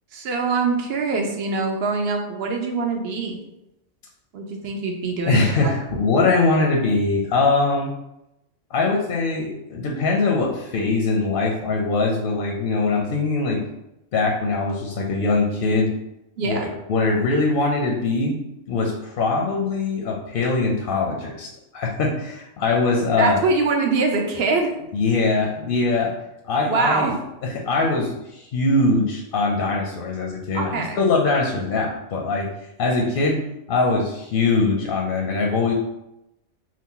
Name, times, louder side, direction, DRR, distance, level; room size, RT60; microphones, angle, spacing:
voice 1, 0.1-3.4 4.3-5.8 16.4-16.7 23.2-24.7 26.6-27.2 30.5-31.0, right 4 dB, 65° right, 2 dB, 0.8 m, -24 dB
voice 2, 5.3-7.9 8.7-13.6 14.1-15.9 16.4-18.4 18.7-21.5 21.7-23.4 24.9-26.1 26.4-27.1 27.4-32.5 32.8-33.4 33.7-35.7, left 3 dB, 60° left, 0 dB, 0.6 m, -22 dB
2.8 x 2.4 x 3.7 m, 0.88 s
omnidirectional pair, 1.2 m